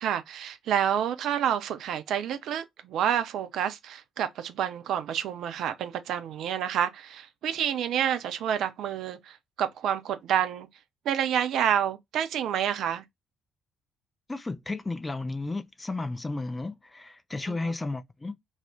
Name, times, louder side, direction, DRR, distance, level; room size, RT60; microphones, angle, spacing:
voice 1, 0.0-10.7 11.1-13.0 17.5-17.7, right 9 dB, 60° right, 0.4 m, -28 dB
voice 2, 14.3-18.4, left 2 dB, 20° left, 0.5 m, -33 dB
2.4 x 2.0 x 3.4 m
figure-of-eight pair, 45°, 0 cm